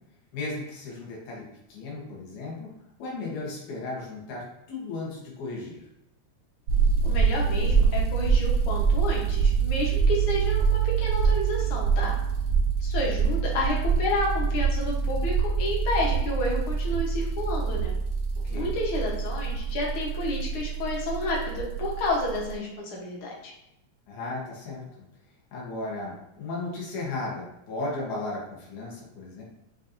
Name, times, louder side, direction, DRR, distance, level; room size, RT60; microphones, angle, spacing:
voice 1, 0.3-2.7 3.0-5.9 18.4-18.8 24.1-25.0 25.5-29.4, left 2 dB, 80° left, -4 dB, 2.6 m, -35 dB
sound 1, 6.7-22.6, right 6 dB, 75° right, 1.3 m, -25 dB
voice 2, 7.0-12.1 12.8-17.9 18.5-23.3, left 2 dB, 60° left, -2 dB, 1.5 m, -30 dB
7.0 x 2.7 x 2.6 m, 0.86 s
omnidirectional pair, 3.4 m